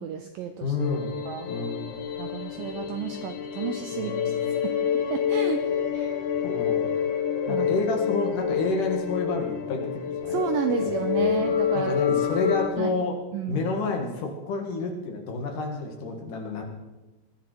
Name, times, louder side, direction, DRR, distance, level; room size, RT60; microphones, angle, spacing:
voice 1, 0.0-0.8 1.3-1.5 2.2-4.2 4.6-4.7 5.1-5.6 5.9-6.2 7.5-7.7 10.3-12.0 12.8-12.9 13.3-13.7, right 9 dB, 90° right, 7 dB, 2.0 m, -31 dB
voice 2, 0.6-1.2 1.4-2.0 3.9-4.6 6.4-6.8 7.5-10.4 10.7-10.9 11.2-11.3 11.7-13.2 13.5-16.6, left 3 dB, 55° left, 2 dB, 3.1 m, -30 dB
sound 1, 0.8-12.7, left 8 dB, 90° left, 3.9 m, -27 dB
21.5 x 14.5 x 4.6 m, 1.1 s
omnidirectional pair, 5.1 m